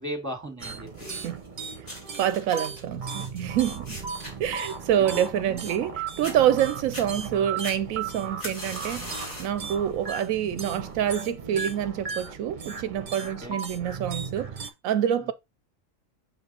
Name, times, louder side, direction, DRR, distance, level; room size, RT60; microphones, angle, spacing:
voice 1, 0.0-1.2 4.9-5.6 13.4-13.6 15.2-15.3, equal, 10° right, 2.1 m, -37 dB
sound 1, 0.6-14.7, right 5 dB, 40° right, 1.1 m, -36 dB
sound 2, 0.9-1.5 1.9-5.9 6.2-6.4 6.8-7.1 7.6-9.6 10.0-10.4 11.2-11.3, left 1 dB, 60° left, 3.2 m, -40 dB
voice 2, 2.2-4.0 4.4-15.3, right 10 dB, 80° right, 1.0 m, -27 dB
6.1 x 5.3 x 4.1 m
omnidirectional pair, 1.4 m